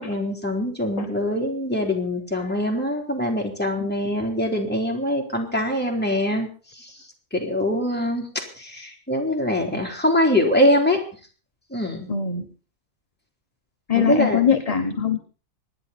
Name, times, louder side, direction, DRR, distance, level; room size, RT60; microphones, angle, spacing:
voice 1, 0.0-6.5 6.8-6.9 7.3-11.0 11.7-12.1 13.9-14.4, left 1 dB, 5° left, 0 dB, 3.2 m, -23 dB
voice 2, 12.1-12.5 13.9-15.2, left 7 dB, 30° left, 6 dB, 0.9 m, -22 dB
25.0 x 10.0 x 4.1 m, 0.39 s
omnidirectional pair, 1.6 m